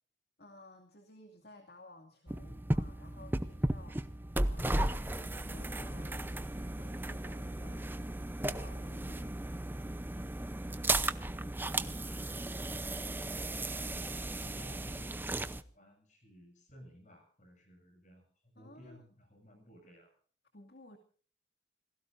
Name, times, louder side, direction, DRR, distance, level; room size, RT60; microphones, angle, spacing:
voice 1, 0.4-9.4 18.6-19.1 20.5-21.0, left 1 dB, 55° left, 3 dB, 2.4 m, -56 dB
sound 1, 2.3-15.6, right 1 dB, 10° right, 0.7 m, -35 dB
voice 2, 11.2-20.2, equal, 40° left, 5 dB, 7.3 m, -57 dB
28.5 x 18.5 x 2.6 m, 0.43 s
head